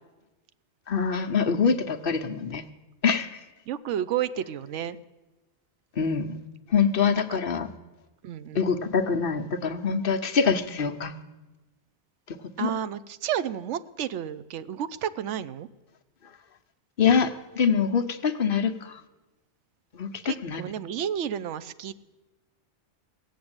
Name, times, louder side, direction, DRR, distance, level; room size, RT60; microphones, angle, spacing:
voice 1, 0.9-2.6 3.0-3.4 6.0-6.4 6.7-7.7 8.5-11.1 12.6-12.7 17.0-19.0 19.9-20.6, left 6 dB, 55° left, 6 dB, 0.9 m, -24 dB
voice 2, 3.7-5.0 7.1-7.4 8.2-8.7 12.6-15.7 20.2-21.9, right 10 dB, 90° right, 15 dB, 1.0 m, -31 dB
17.5 x 7.7 x 8.7 m, 1.1 s
omnidirectional pair, 1.2 m